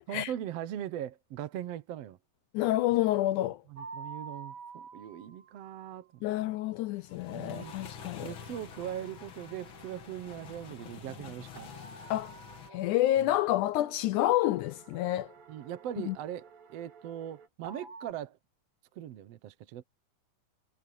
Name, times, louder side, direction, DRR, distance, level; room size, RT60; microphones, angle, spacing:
voice 1, 0.1-2.2 3.7-6.1 7.3-7.9 8.2-11.7 15.5-18.4 18.9-19.8, right 11 dB, 65° right, 1.7 m, -40 dB
voice 2, 2.5-3.6 6.2-8.3 12.1-12.3 12.7-15.3 16.1-16.2, left 14 dB, 80° left, 1.9 m, -28 dB
sound 1, 3.8-6.7 11.6-13.7 17.6-18.1, right 4 dB, 40° right, 2.4 m, -48 dB
sound 2, 7.0-12.7, left 9 dB, 55° left, 1.6 m, -47 dB
sound 3, 7.5-17.5, right 7 dB, 85° right, 3.8 m, -57 dB
omnidirectional pair, 4.0 m